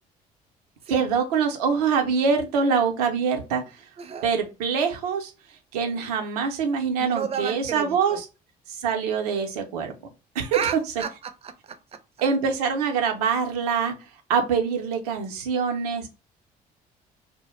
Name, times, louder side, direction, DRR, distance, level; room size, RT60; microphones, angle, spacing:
voice 1, 0.9-3.6 4.2-5.3 5.7-8.3 8.7-9.9 10.4-10.6 12.2-14.0 14.3-16.1, right 6 dB, 90° right, 0.5 m, -24 dB
voice 2, 4.0-4.3 7.0-8.2 10.5-12.0, right 7 dB, 30° right, 0.4 m, -32 dB
2.2 x 2.0 x 2.9 m
hypercardioid pair, 60°, 19 cm